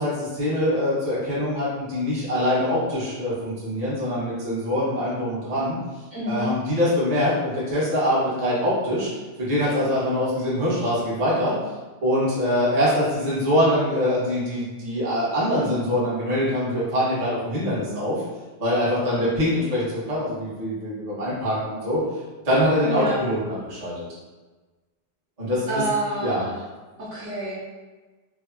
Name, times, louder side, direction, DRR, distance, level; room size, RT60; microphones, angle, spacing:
voice 1, 0.0-5.8 6.3-9.1 9.4-11.5 12.0-18.2 18.6-22.0 22.4-24.0 25.4-25.8 26.2-26.4, left 1 dB, 40° right, -9 dB, 0.5 m, -24 dB
voice 2, 6.1-6.5 22.8-23.2 25.7-26.6 27.0-27.7, right 1 dB, 65° right, -10 dB, 0.9 m, -28 dB
3.4 x 2.0 x 2.4 m, 1.3 s
omnidirectional pair, 2.1 m